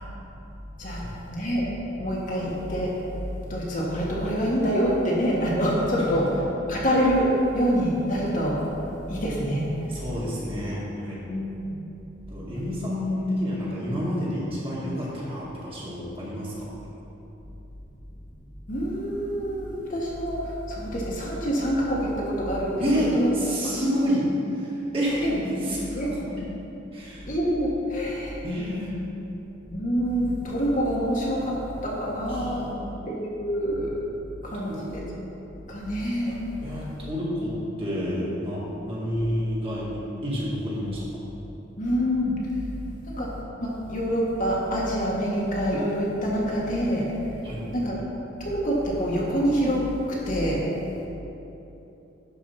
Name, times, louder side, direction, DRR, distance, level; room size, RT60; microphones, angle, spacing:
voice 1, 1.3-1.7 2.0-2.9 3.4-6.2 6.7-7.3 7.5-8.6 9.1-9.6 11.3-11.7 18.7-22.8 23.1-23.7 25.2-25.3 25.9-26.1 27.3-28.4 29.7-31.6 31.8-32.6 33.1-33.9 34.4-35.0 35.7-36.4 41.8-42.4 43.0-43.3 43.6-47.1 47.7-48.0 48.4-50.6, equal, 40° left, -5 dB, 1.6 m, -26 dB
voice 2, 9.9-11.2 12.3-16.7 22.8-24.3 24.6-25.3 25.6-26.2 26.9-27.3 28.4-28.9 32.3-32.9 34.7-34.8 36.6-39.9 40.2-41.0 47.4-47.6, equal, 30° right, -7 dB, 2.0 m, -29 dB
11.0 x 4.7 x 5.8 m, 3.0 s
head